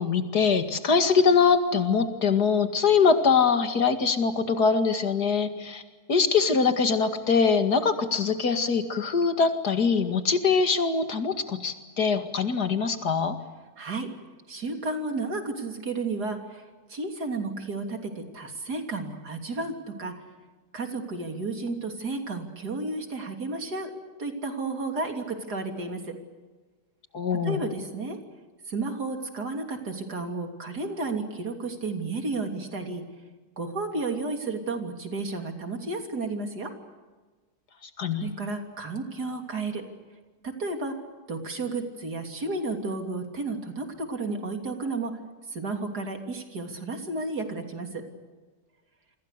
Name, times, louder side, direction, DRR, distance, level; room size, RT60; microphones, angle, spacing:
voice 1, 0.0-5.8 6.1-13.4 27.1-27.6 38.0-38.3, left 5 dB, 75° left, 8 dB, 2.6 m, -23 dB
voice 2, 13.8-14.1 14.5-16.6 16.9-20.1 20.7-23.9 24.2-26.2 27.4-28.2 28.7-33.0 33.6-36.7 38.1-39.8 40.4-41.0 41.3-45.2 45.5-48.0, right 3 dB, 75° right, 5 dB, 3.8 m, -32 dB
28.5 x 25.0 x 6.7 m, 1.4 s
omnidirectional pair, 1.7 m